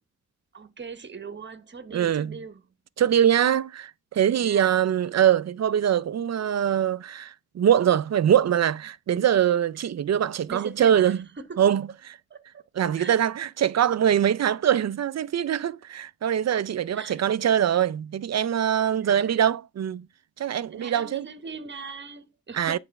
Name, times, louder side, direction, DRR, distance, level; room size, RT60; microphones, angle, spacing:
voice 1, 0.5-2.7 4.4-4.8 9.8-9.9 10.5-11.7 12.3-13.2 16.5-16.6 16.9-17.2 18.9-19.5 20.7-22.8, right 5 dB, 30° right, 1.1 m, -40 dB
voice 2, 1.9-2.3 3.0-11.2 11.6-11.8 12.8-20.1 20.4-21.2 22.6-22.8, right 9 dB, 45° right, 0.5 m, -23 dB
10.0 x 3.4 x 5.8 m
wide cardioid pair, 125°, 37 cm